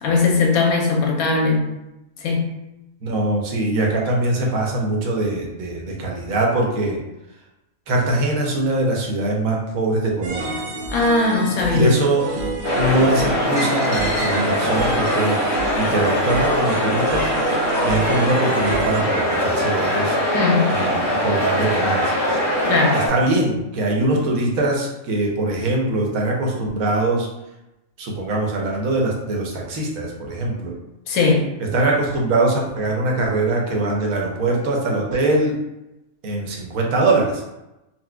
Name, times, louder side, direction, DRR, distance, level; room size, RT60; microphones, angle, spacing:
voice 1, 0.0-1.7 2.2-2.6 10.9-11.9 20.3-20.9 22.6-23.0 31.1-31.5, left 3 dB, 90° left, 0 dB, 1.1 m, -19 dB
voice 2, 3.0-7.0 7.9-10.6 11.7-12.3 12.7-15.4 15.7-17.3 17.8-20.2 20.7-22.1 22.9-27.3 28.0-30.7 31.6-35.6 36.2-37.4, right 2 dB, 85° right, -1 dB, 1.1 m, -22 dB
sound 1, 10.2-19.0, right 2 dB, 65° right, 0.8 m, -29 dB
sound 2, 12.6-23.1, equal, 50° left, 0.7 m, -21 dB
4.2 x 2.2 x 2.2 m, 0.93 s
omnidirectional pair, 1.4 m